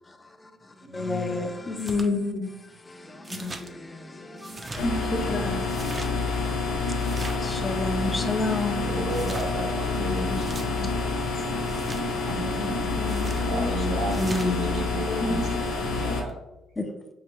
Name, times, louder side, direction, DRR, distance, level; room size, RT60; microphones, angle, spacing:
voice 1, 0.1-1.9 2.9-5.3 5.9-8.9 14.2-14.7 16.8-16.9, left 2 dB, 20° left, 0.5 m, -32 dB
voice 2, 0.8-1.5 8.8-10.3 12.3-16.4, right 2 dB, 75° right, 0.9 m, -34 dB
voice 3, 1.7-2.5 4.8-5.7 10.0-10.3 10.6-10.9 12.6-12.7 13.0-14.0 15.1-15.5 16.1-16.2, left 3 dB, 50° left, 0.8 m, -30 dB
sound 1, 1.8-2.1 3.2-3.7 4.4-4.9 5.6-6.1 7.0-7.5 9.1-9.5 10.3-10.7 11.7-12.0 13.1-13.4 14.1-14.5, right 2 dB, 30° right, 0.5 m, -39 dB
sound 2, 4.8-16.2, left 3 dB, 90° left, 0.7 m, -28 dB
5.6 x 2.1 x 3.1 m
cardioid pair, 90°, 0 cm